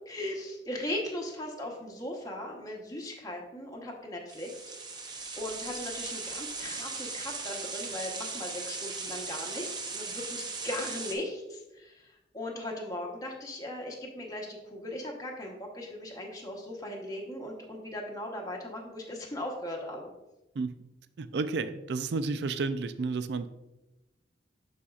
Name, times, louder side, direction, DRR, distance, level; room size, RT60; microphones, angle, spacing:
voice 1, 0.1-4.6 5.0-20.1, left 1 dB, 20° left, -1 dB, 1.0 m, -38 dB
sound 1, 4.3-11.2, right 4 dB, 25° right, 0.6 m, -38 dB
voice 2, 21.2-23.5, right 4 dB, 60° right, 11 dB, 0.4 m, -31 dB
11.0 x 4.2 x 2.4 m, 0.98 s
head